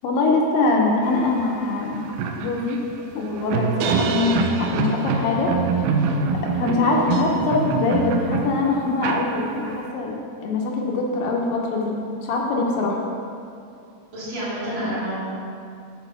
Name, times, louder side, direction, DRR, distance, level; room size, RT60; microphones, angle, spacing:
voice 1, 0.0-2.0 2.4-2.8 3.1-5.5 6.5-13.0, left 3 dB, 75° left, -1 dB, 2.4 m, -23 dB
sound 1, 1.4-1.5 1.8-9.9, right 5 dB, 80° right, 2.1 m, -25 dB
voice 2, 14.1-15.2, right 1 dB, 60° right, -12 dB, 3.7 m, -28 dB
8.2 x 4.9 x 6.7 m, 2.5 s
omnidirectional pair, 4.4 m